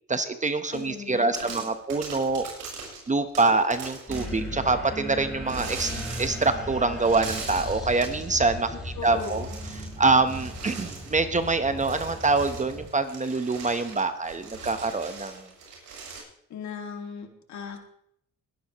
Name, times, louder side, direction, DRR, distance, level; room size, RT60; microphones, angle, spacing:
voice 1, 0.1-2.5 3.1-5.9 6.2-9.4 10.0-15.5, right 3 dB, 25° right, 9 dB, 1.1 m, -25 dB
voice 2, 0.7-1.7 9.0-9.6 16.5-17.8, left 6 dB, 65° left, 4 dB, 2.4 m, -38 dB
sound 1, 0.7-1.0 1.3-4.5 5.5-6.6 7.0-8.2 9.0-10.0 10.2-16.2, right 4 dB, 85° right, 6.8 m, -41 dB
sound 2, 4.1-12.9, equal, ahead, 6.2 m, -37 dB
21.0 x 11.0 x 3.1 m, 0.72 s
cardioid pair, 90°, 30 cm